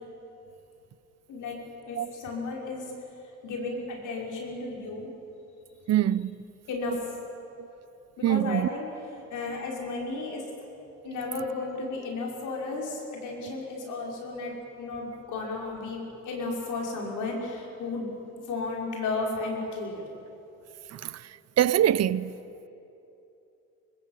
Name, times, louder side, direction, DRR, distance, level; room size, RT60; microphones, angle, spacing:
voice 1, 1.8-2.9 3.4-5.1 6.7-7.1 8.2-10.4 11.0-18.1 18.5-20.0, left 3 dB, 80° left, 5.7 m, -33 dB
voice 2, 5.9-6.3 7.6-7.7 8.2-8.7 21.0-21.1 21.6-22.3, right 11 dB, 60° right, 0.7 m, -23 dB
24.5 x 21.0 x 9.0 m
cardioid pair, 90°, 30 cm